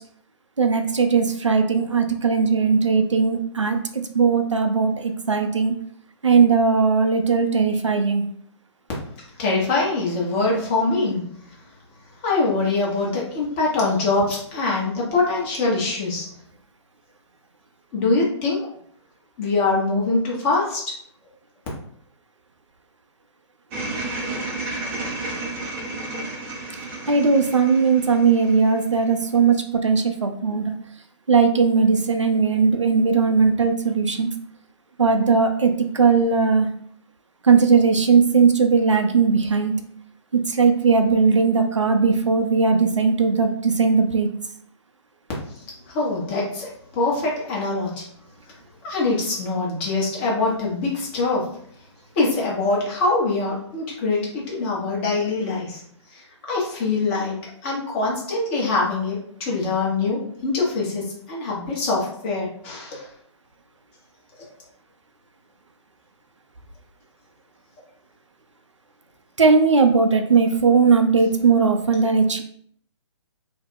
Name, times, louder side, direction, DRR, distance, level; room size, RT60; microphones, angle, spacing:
voice 1, 0.6-5.7 6.2-8.2 27.1-30.7 31.3-34.3 35.0-36.7 37.4-39.7 40.3-44.3 69.4-72.4, right 5 dB, 80° right, 6 dB, 0.4 m, -18 dB
voice 2, 9.4-11.2 12.2-16.3 17.9-18.6 19.4-20.8 45.5-48.1 48.8-51.5 52.1-55.8 56.1-63.1, left 3 dB, 25° left, -4 dB, 0.8 m, -23 dB
sound 1, 23.7-29.1, right 2 dB, 15° right, 0.4 m, -32 dB
2.3 x 2.0 x 3.6 m, 0.64 s
figure-of-eight pair, 135°, 15 cm